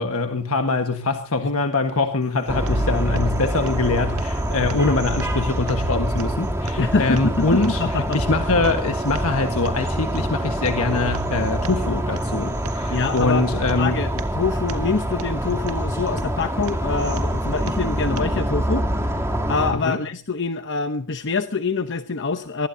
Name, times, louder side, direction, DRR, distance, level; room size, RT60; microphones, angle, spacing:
voice 1, 0.0-14.0 19.7-20.0, left 3 dB, 75° left, 5 dB, 1.4 m, -23 dB
sound 1, 2.2-18.2, right 2 dB, 75° right, 1.9 m, -40 dB
sound 2, 2.5-19.7, equal, 15° right, 3.1 m, -25 dB
voice 2, 6.8-8.2 12.9-13.5 13.8-19.2 19.5-22.7, left 4 dB, 55° left, 9 dB, 0.9 m, -25 dB
24.0 x 20.5 x 2.8 m, 0.39 s
head